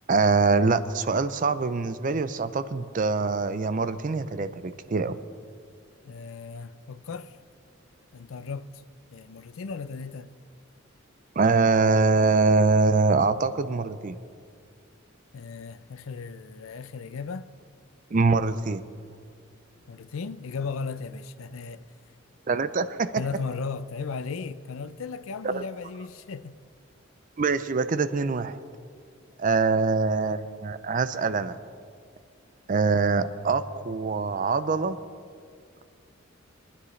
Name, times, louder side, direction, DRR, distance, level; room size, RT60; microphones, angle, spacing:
voice 1, 0.1-5.2 11.4-14.2 18.1-18.8 22.5-23.2 25.4-25.6 27.4-28.6 29.4-31.6 32.7-35.0, right 4 dB, 40° right, 0.5 m, -24 dB
voice 2, 6.0-7.4 8.1-8.8 9.1-10.3 15.3-17.5 19.9-21.8 23.2-26.5, left 5 dB, 85° left, 0.5 m, -36 dB
22.5 x 9.8 x 3.2 m
head